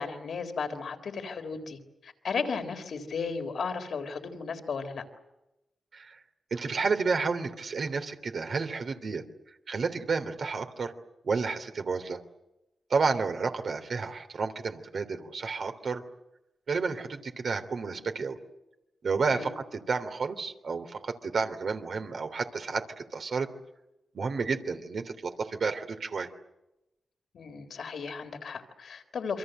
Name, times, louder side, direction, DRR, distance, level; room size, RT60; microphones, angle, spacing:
voice 1, 0.0-5.0 19.3-19.5 27.3-29.4, left 5 dB, 75° left, 7 dB, 3.8 m, -35 dB
voice 2, 6.5-9.2 9.7-10.9 11.2-12.2 12.9-16.0 16.7-18.4 19.0-23.5 24.1-26.3, right 4 dB, 65° right, 6 dB, 3.2 m, -31 dB
28.0 x 24.0 x 7.9 m, 0.93 s
cardioid pair, 55°, 0 cm